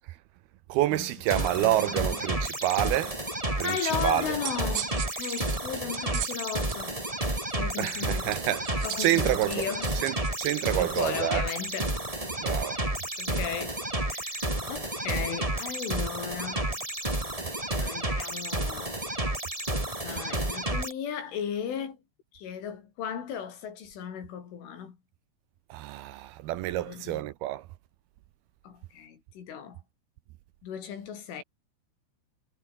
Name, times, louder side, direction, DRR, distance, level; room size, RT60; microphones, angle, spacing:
voice 1, 0.7-3.2 3.6-4.4 7.8-9.7 9.9-11.4 12.4-12.8 25.7-27.7, right 15 dB, 80° right, 2.2 m, -28 dB
sound 1, 1.3-20.9, right 1 dB, 10° right, 3.2 m, -31 dB
voice 2, 1.6-2.1 3.6-7.0 7.5-8.4 8.8-9.9 10.8-12.0 13.2-16.8 17.8-19.2 20.0-22.0 22.3-25.0 26.8-27.2 28.6-29.8 30.6-31.4, left 8 dB, 80° left, 6.4 m, -36 dB
sound 2, 4.2-6.8 8.3-11.2, right 12 dB, 65° right, 2.9 m, -39 dB
omnidirectional pair, 5.6 m